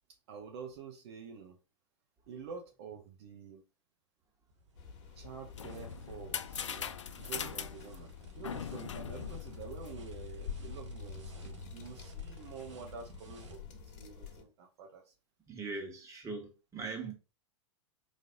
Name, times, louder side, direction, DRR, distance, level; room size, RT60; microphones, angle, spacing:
voice 1, 0.3-1.6 2.3-3.6 5.1-15.1, right 6 dB, 65° right, 1.0 m, -48 dB
sound 1, 4.5-13.6, right 4 dB, 80° right, 1.2 m, -59 dB
sound 2, 4.8-14.4, left 7 dB, 50° left, 1.3 m, -47 dB
sound 3, 5.2-10.3, left 7 dB, 85° left, 0.5 m, -42 dB
voice 2, 15.5-17.1, right 4 dB, 20° right, 1.8 m, -40 dB
4.2 x 3.3 x 3.8 m
hypercardioid pair, 100°, 15 cm